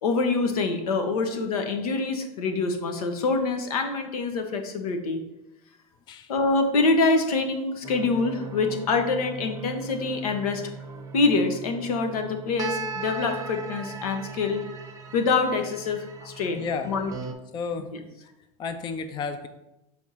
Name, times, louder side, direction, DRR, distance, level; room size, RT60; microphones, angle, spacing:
voice 1, 0.0-5.2 6.3-10.6 11.1-14.6 15.1-17.1, left 3 dB, 85° left, 6 dB, 1.1 m, -25 dB
sound 1, 7.8-17.3, right 4 dB, 20° right, 0.7 m, -38 dB
voice 2, 16.6-16.9 17.5-17.9 18.6-19.5, left 5 dB, 25° left, 9 dB, 0.4 m, -32 dB
6.3 x 3.5 x 5.6 m, 0.94 s
supercardioid pair, 130°, 18 cm